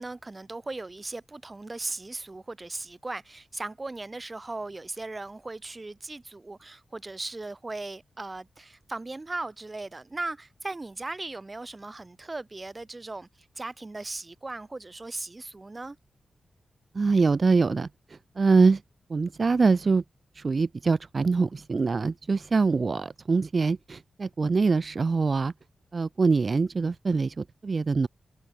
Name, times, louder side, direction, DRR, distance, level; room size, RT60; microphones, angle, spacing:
voice 1, 0.0-16.0, right 2 dB, 30° right, 0.9 m, -38 dB
voice 2, 16.9-18.8 19.1-20.0 20.3-25.5 25.9-28.1, right 4 dB, 50° right, 0.3 m, -24 dB
cardioid pair, 50°, 0 cm